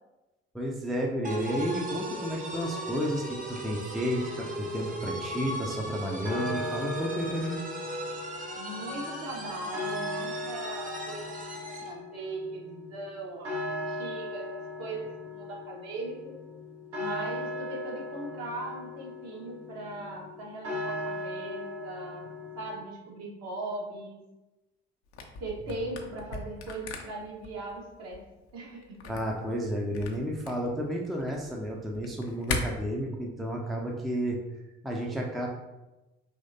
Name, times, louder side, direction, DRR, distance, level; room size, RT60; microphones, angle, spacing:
voice 1, 0.5-7.6 29.1-34.4 34.8-35.5, equal, ahead, -1 dB, 0.5 m, -32 dB
sound 1, 1.2-12.0, right 1 dB, 25° right, 0.9 m, -37 dB
sound 2, 4.1-22.8, left 1 dB, 70° right, 1.3 m, -38 dB
voice 2, 8.5-11.3 11.6-16.4 17.0-22.3 22.5-24.2 25.4-28.2 28.5-29.1, right 2 dB, 50° right, -3 dB, 1.3 m, -39 dB
Camera, 25.1-32.6, left 5 dB, 70° left, 0.6 m, -39 dB
5.0 x 3.1 x 2.7 m, 1.0 s
figure-of-eight pair, 50°, 34 cm